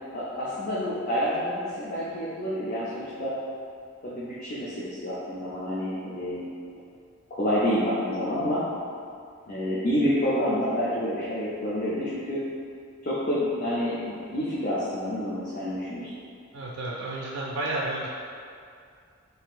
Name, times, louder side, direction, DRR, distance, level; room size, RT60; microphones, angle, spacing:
voice 1, 0.1-3.4 4.0-6.5 7.3-8.6 9.5-12.4 13.0-16.1, equal, 40° left, -9 dB, 0.4 m, -28 dB
voice 2, 16.5-18.1, right 2 dB, 80° right, -4 dB, 0.4 m, -31 dB
2.7 x 2.4 x 3.7 m, 2.3 s
head